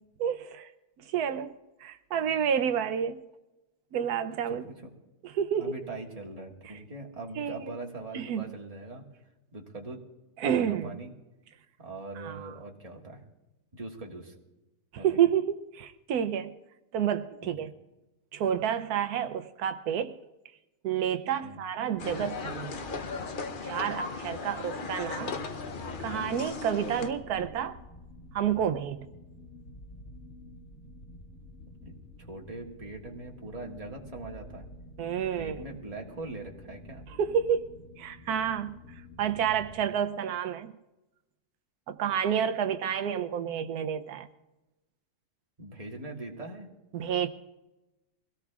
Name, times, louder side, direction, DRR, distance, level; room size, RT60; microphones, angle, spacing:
voice 1, 0.2-0.7 1.0-3.2 3.9-4.6 5.2-5.8 7.4-7.7 8.1-8.4 10.4-10.9 12.2-12.5 15.0-16.5 16.9-17.7 18.3-20.2 20.8-22.7 23.6-25.4 26.0-27.8 28.3-29.0 35.0-35.6 37.2-37.7 38.0-38.7 39.2-40.7 41.9-44.3 46.9-47.3, right 8 dB, 85° right, 9 dB, 1.2 m, -29 dB
voice 2, 4.5-4.9 5.6-9.0 9.5-10.0 10.4-11.1 11.8-13.2 13.7-14.3 15.0-15.1 17.4-17.7 21.4-21.6 31.8-34.7 35.4-37.1 45.6-46.7, right 2 dB, 25° right, 0 dB, 1.8 m, -41 dB
sound 1, 22.0-39.7, left 2 dB, 60° left, 2.4 m, -49 dB
sound 2, 22.0-27.1, left 4 dB, 40° left, 0.8 m, -37 dB
23.5 x 17.5 x 2.4 m, 1.0 s
omnidirectional pair, 1.6 m